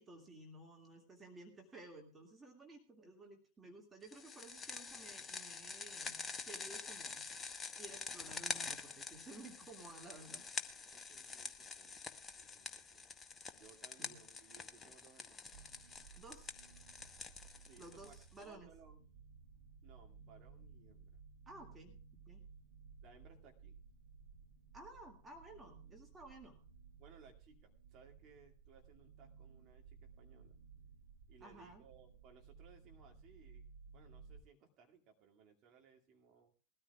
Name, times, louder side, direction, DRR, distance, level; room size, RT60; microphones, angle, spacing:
voice 1, 0.0-7.3 7.8-10.4 14.0-14.2 16.2-16.6 17.8-18.7 21.5-22.5 24.7-26.6 31.4-31.8, right 2 dB, 15° right, 3 dB, 2.1 m, -55 dB
sound 1, 4.1-18.4, left 4 dB, 20° left, 0.9 m, -47 dB
voice 2, 10.9-13.1 13.5-15.5 17.5-19.0 19.8-21.2 23.0-23.8 25.8-26.1 27.0-30.6 31.3-33.6 33.9-36.5, right 6 dB, 35° right, 1 dB, 2.3 m, -64 dB
sound 2, 15.5-34.4, right 5 dB, 70° right, 1.3 m, -59 dB
21.0 x 13.5 x 2.3 m, 0.37 s
figure-of-eight pair, 90°, 0 cm